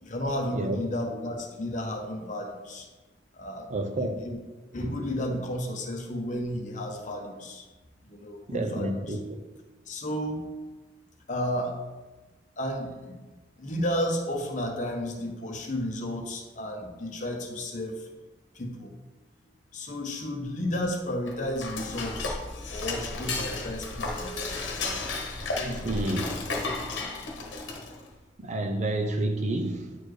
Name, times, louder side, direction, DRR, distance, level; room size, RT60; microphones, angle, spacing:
voice 1, 0.0-2.9 3.3-4.4 4.7-7.7 8.0-9.2 9.9-10.5 11.3-11.8 12.6-13.2 13.6-18.1 18.5-18.9 19.7-22.4 22.7-24.3 25.5-26.2, equal, 40° left, 2 dB, 1.0 m, -32 dB
voice 2, 3.7-4.1 8.5-9.2 25.8-26.2 28.4-30.0, right 1 dB, 40° right, 4 dB, 0.6 m, -29 dB
Dishes pots and pans / Cutlery silverware, 21.2-28.1, left 3 dB, 85° left, 1.1 m, -33 dB
9.3 x 4.2 x 3.3 m, 1.2 s
head